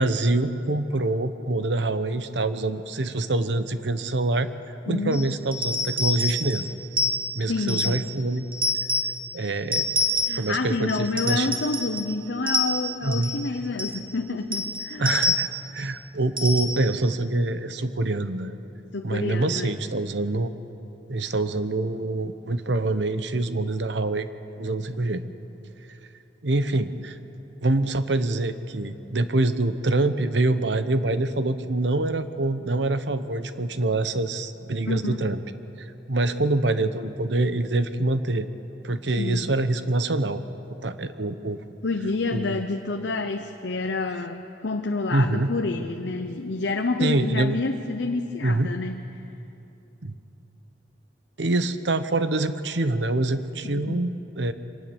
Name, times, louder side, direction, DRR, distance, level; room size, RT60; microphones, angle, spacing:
voice 1, 0.0-4.5 4.9-6.7 7.3-8.4 9.3-9.9 10.4-11.5 13.0-13.3 15.0-15.5 15.7-18.6 19.0-20.5 21.1-24.3 24.6-25.2 26.4-27.2 27.6-35.4 35.8-38.5 38.8-40.4 40.7-41.6 42.3-42.6 45.1-45.5 47.0-47.6 48.4-48.7 50.0-50.1 51.4-54.5, right 2 dB, 75° right, 11 dB, 1.0 m, -25 dB
voice 2, 4.9-5.2 7.5-8.0 10.2-15.1 18.9-19.7 34.9-35.2 39.2-39.5 41.8-49.0 53.7-54.0, left 3 dB, 75° left, 5 dB, 0.9 m, -28 dB
sound 1, 5.1-8.1 8.5-9.2 9.7-10.5 10.9-12.1 12.5-13.5 13.8-14.0 14.5-15.7 16.4-16.9, left 1 dB, 30° right, 1.9 m, -27 dB
24.0 x 19.0 x 7.1 m, 2.9 s
head